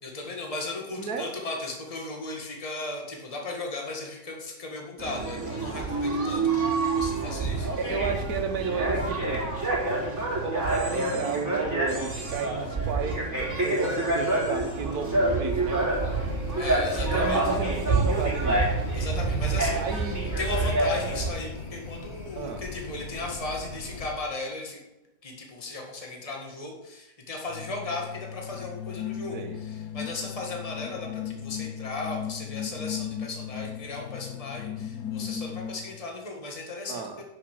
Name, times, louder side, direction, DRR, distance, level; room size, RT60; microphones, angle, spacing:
voice 1, 0.0-6.4 6.9-7.7 16.6-17.6 18.9-20.0 20.4-24.8 25.2-37.2, left 2 dB, 20° left, 0 dB, 1.9 m, -36 dB
voice 2, 0.9-1.3 7.3-9.5 10.4-15.9 17.0-18.7 19.7-20.3 22.3-22.6 29.3-29.6 36.9-37.2, right 5 dB, 65° right, 6 dB, 1.7 m, -33 dB
sound 1, 5.0-21.3, right 2 dB, 10° right, 3.7 m, -27 dB
sound 2, 15.6-24.1, left 3 dB, 40° left, 3.0 m, -40 dB
sound 3, 27.5-36.1, left 9 dB, 65° left, 1.3 m, -36 dB
9.9 x 6.7 x 6.6 m, 0.97 s
omnidirectional pair, 1.8 m